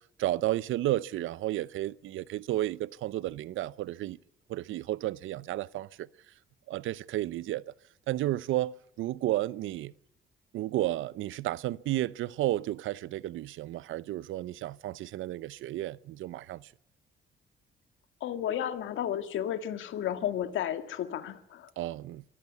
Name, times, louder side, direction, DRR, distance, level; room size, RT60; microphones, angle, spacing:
voice 1, 0.2-4.2 4.5-6.1 6.7-7.6 8.1-9.9 10.5-16.7 21.8-22.2, right 15 dB, 80° right, 0.7 m, -32 dB
voice 2, 18.2-21.7, left 10 dB, 80° left, 2.0 m, -33 dB
23.5 x 14.0 x 9.4 m
cardioid pair, 90°, 20 cm